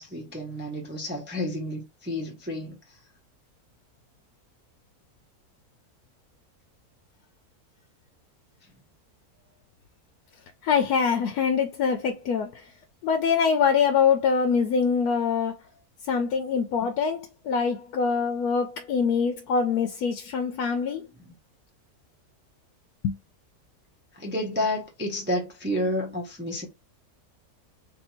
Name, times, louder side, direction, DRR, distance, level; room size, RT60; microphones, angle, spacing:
voice 1, 0.0-2.8 21.2-21.3 24.2-26.7, left 1 dB, 10° right, 0.5 m, -30 dB
voice 2, 10.6-12.5 13.0-15.6 16.1-17.2 17.5-21.1 23.0-23.1, left 6 dB, 85° left, 1.1 m, -24 dB
3.2 x 2.7 x 4.2 m
omnidirectional pair, 1.6 m